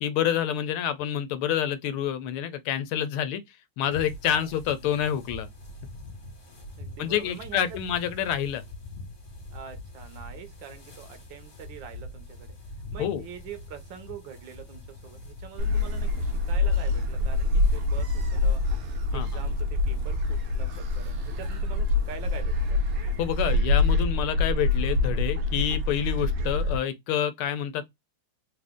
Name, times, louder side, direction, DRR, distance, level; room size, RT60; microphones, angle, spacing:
voice 1, 0.0-3.4 3.8-5.5 7.0-8.6 13.0-13.2 19.1-19.3 23.2-27.8, left 10 dB, 85° left, 1.5 m, -28 dB
sound 1, 3.9-23.6, left 1 dB, 40° left, 1.6 m, -44 dB
voice 2, 6.8-7.8 9.5-12.6 12.9-18.6 19.1-22.8, right 7 dB, 70° right, 1.4 m, -44 dB
Gull seagull, 15.6-26.8, left 2 dB, 90° right, 1.7 m, -25 dB
3.8 x 2.5 x 3.4 m
omnidirectional pair, 2.3 m